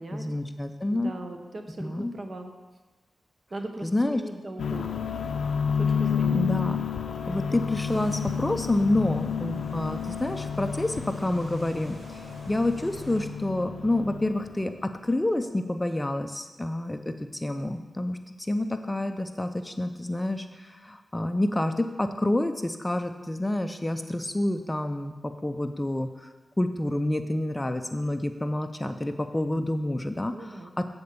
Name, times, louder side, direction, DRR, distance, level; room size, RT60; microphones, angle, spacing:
voice 1, 0.1-1.1 1.8-2.1 3.8-4.2 6.3-6.8 7.3-26.3 26.6-30.6, left 1 dB, 15° left, 8 dB, 0.5 m, -28 dB
voice 2, 0.9-2.5 3.5-5.3 5.8-6.5 30.3-30.7, right 2 dB, 50° right, 4 dB, 1.0 m, -39 dB
sound 1, 4.6-14.8, left 7 dB, 80° left, 0.5 m, -30 dB
sound 2, 7.8-13.3, right 1 dB, 65° right, 1.3 m, -49 dB
8.4 x 4.3 x 6.6 m, 1.3 s
cardioid pair, 65°, 0 cm